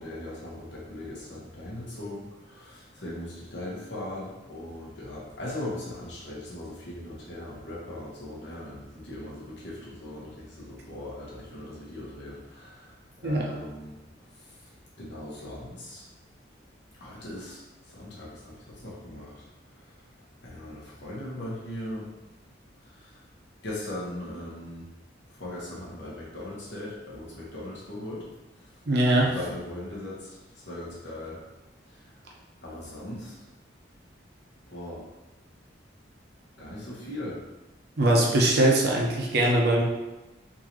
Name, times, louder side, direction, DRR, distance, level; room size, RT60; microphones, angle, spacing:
voice 1, 0.0-13.9 14.3-14.6 15.0-16.1 17.0-20.0 20.4-22.1 22.8-23.2 23.6-24.9 25.3-28.3 28.6-28.7 29.1-31.4 31.9-32.1 32.6-33.3 34.7-35.1 36.6-37.4, left 1 dB, 75° left, -6 dB, 1.2 m, -39 dB
voice 2, 28.9-29.3 38.0-39.8, right 1 dB, 60° right, -1 dB, 0.7 m, -21 dB
3.7 x 2.7 x 3.1 m, 1.1 s
head